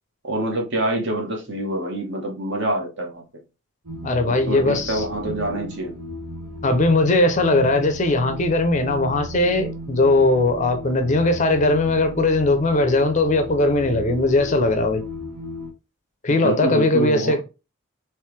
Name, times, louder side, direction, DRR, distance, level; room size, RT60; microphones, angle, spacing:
voice 1, 0.2-3.2 4.5-6.0 16.3-17.4, right 1 dB, 55° right, 1.2 m, -26 dB
sound 1, 3.8-15.7, left 1 dB, 75° right, 1.2 m, -35 dB
voice 2, 4.0-5.0 6.6-15.0 16.2-17.4, left 2 dB, 35° left, 0.5 m, -19 dB
3.2 x 3.0 x 3.2 m
head